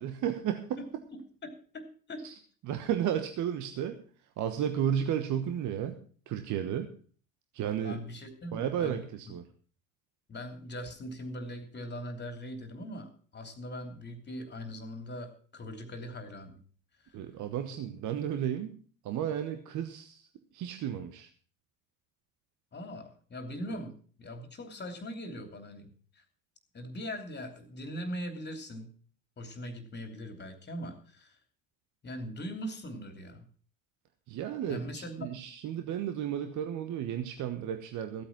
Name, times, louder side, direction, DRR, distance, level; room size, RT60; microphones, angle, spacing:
voice 1, 0.0-0.8 2.2-2.3 2.6-4.0 4.4-6.0 6.3-6.9 7.5-8.0 8.5-9.4 17.1-18.7 19.0-20.3 20.5-21.3 34.3-38.2, right 9 dB, 45° right, 8 dB, 1.2 m, -33 dB
voice 2, 0.8-2.3 7.8-9.0 9.3-9.4 10.3-16.6 17.0-17.2 22.7-26.2 26.7-28.9 29.4-31.4 32.0-33.5 34.7-35.3, equal, 25° left, 8 dB, 3.0 m, -41 dB
15.0 x 8.7 x 6.0 m, 0.42 s
figure-of-eight pair, 65°, 41 cm